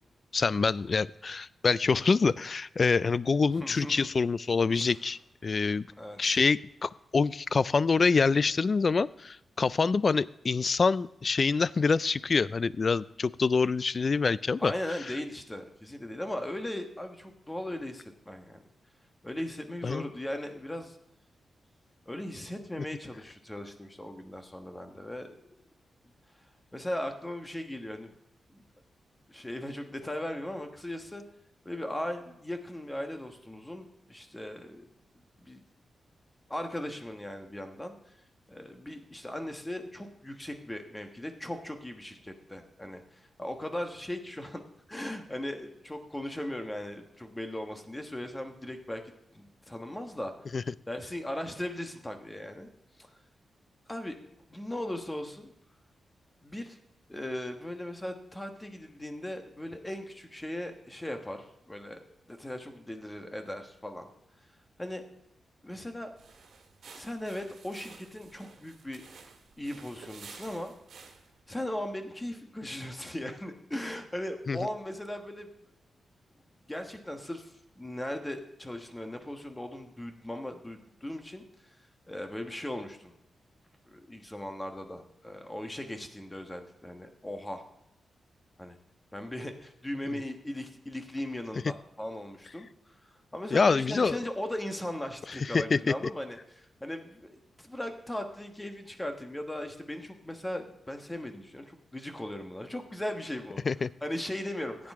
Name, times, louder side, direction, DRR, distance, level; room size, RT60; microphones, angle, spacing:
voice 1, 0.3-5.9 6.2-14.7 19.8-20.0 50.5-50.6 74.5-74.6 93.5-94.2 95.5-95.8 103.7-103.9, left 4 dB, 45° left, 19 dB, 0.3 m, -26 dB
voice 2, 3.6-4.1 4.7-5.0 6.0-6.4 14.6-18.7 19.2-21.0 22.1-25.3 26.7-28.1 28.5-28.6 29.3-31.2 31.6-34.9 35.4-35.6 36.5-38.2 38.5-44.6 44.9-50.3 50.9-52.7 53.0-53.2 53.9-54.2 54.5-55.5 56.4-56.8 57.1-62.0 62.3-64.1 64.8-65.1 65.6-66.1 67.0-69.0 69.6-70.7 71.5-75.5 76.6-83.1 83.9-87.6 88.6-88.8 89.1-103.6 104.0-104.9, left 1 dB, 15° left, 6 dB, 1.2 m, -38 dB
sound 1, 66.1-71.4, right 5 dB, 75° right, 1.7 m, -52 dB
15.0 x 8.7 x 3.6 m, 0.81 s
cardioid pair, 100°, 0 cm